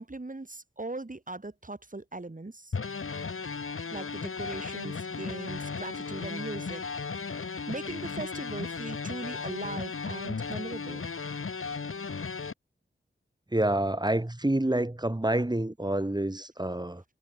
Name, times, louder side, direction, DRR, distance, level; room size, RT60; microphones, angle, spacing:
voice 1, 0.0-2.8 3.9-6.8 7.7-11.1, right 2 dB, 40° right, 5.6 m, -39 dB
sound 1, 2.7-12.5, left 5 dB, 85° left, 3.0 m, -36 dB
voice 2, 13.5-17.0, right 1 dB, 20° right, 3.6 m, -28 dB
wide cardioid pair, 60°, 21 cm